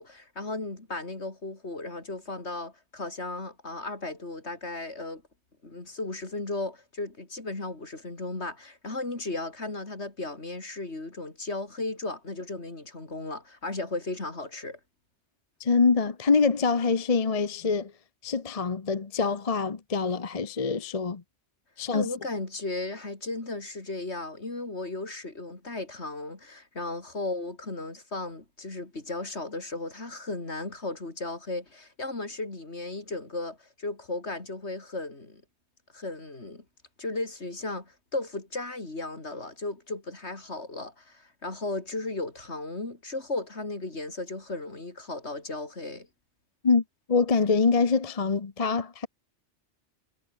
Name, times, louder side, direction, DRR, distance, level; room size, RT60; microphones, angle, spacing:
voice 1, 0.0-5.2 5.6-14.8 21.9-35.4 35.9-36.6 37.0-46.1, left 2 dB, 65° left, 4.2 m, -35 dB
voice 2, 15.6-17.9 18.2-21.2 21.8-22.1 46.6-46.8 47.1-49.1, left 4 dB, 35° left, 1.0 m, -25 dB
omnidirectional pair, 1.2 m